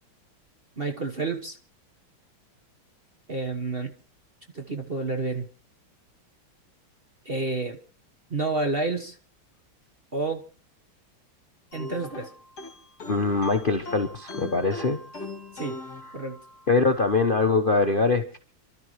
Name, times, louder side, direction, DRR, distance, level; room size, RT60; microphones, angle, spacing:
voice 1, 0.8-1.6 3.3-3.9 4.5-5.5 7.2-7.8 8.3-9.2 10.1-10.4 11.7-12.3 15.5-15.8 16.1-16.4, right 3 dB, 35° right, 5 dB, 1.2 m, -29 dB
sound 1, 11.7-16.8, left 2 dB, 50° left, 3.3 m, -40 dB
voice 2, 13.1-15.0 16.7-18.4, left 3 dB, 35° left, 7 dB, 1.0 m, -23 dB
29.5 x 12.5 x 3.2 m, 0.38 s
omnidirectional pair, 2.2 m